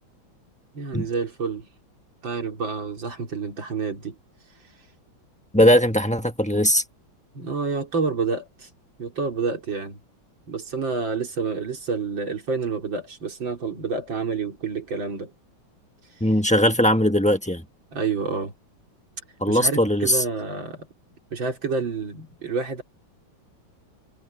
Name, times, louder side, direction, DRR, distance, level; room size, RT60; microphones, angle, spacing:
voice 1, 0.7-1.7 2.2-4.2 7.3-8.7 9.0-10.0 10.5-15.3 17.9-18.5 19.5-20.9 21.3-22.8, right 5 dB, 70° right, 4.1 m, -28 dB
voice 2, 5.5-6.8 16.2-17.6 19.4-20.2, equal, 5° left, 1.2 m, -19 dB
omnidirectional pair, 2.2 m